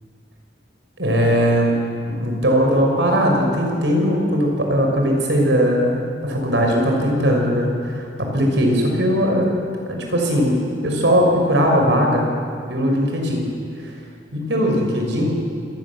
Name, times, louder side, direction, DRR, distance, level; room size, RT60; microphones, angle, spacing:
voice 1, 1.0-1.7 2.1-9.5 9.9-12.3 12.7-13.4 13.8-13.9 14.3-15.4, equal, 75° right, 1 dB, 5.9 m, -19 dB
27.0 x 19.5 x 7.4 m, 2.3 s
head